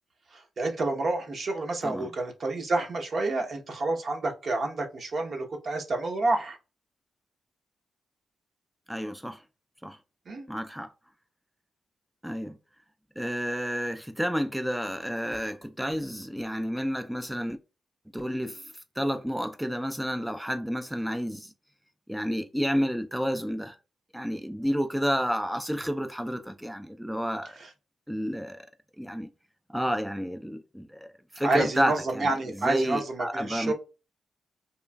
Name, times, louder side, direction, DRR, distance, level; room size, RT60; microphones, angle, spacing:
voice 1, 0.3-6.6 10.3-10.5 27.6-27.7 31.4-33.7, right 2 dB, 60° right, 0.8 m, -29 dB
voice 2, 8.9-9.4 9.8-10.0 10.5-10.9 12.2-12.6 13.2-17.6 18.1-18.6 19.0-21.5 22.1-23.8 24.1-27.6 28.1-28.7 29.0-29.3 29.7-31.1 31.3-33.7, equal, 5° right, 0.3 m, -30 dB
3.0 x 2.4 x 2.2 m
cardioid pair, 60°, 0 cm